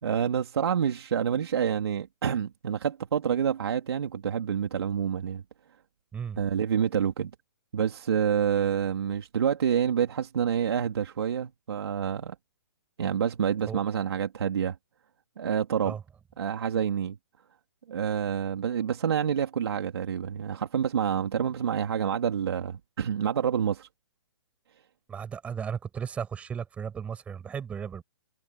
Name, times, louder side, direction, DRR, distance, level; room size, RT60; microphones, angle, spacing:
voice 1, 0.0-5.4 6.4-7.3 7.7-12.3 13.0-14.8 15.4-15.9 16.4-17.2 17.9-23.9, right 8 dB, 65° right, 2.9 m, -28 dB
voice 2, 25.1-28.0, right 7 dB, 10° right, 6.3 m, -35 dB
hypercardioid pair, 170°, 14 cm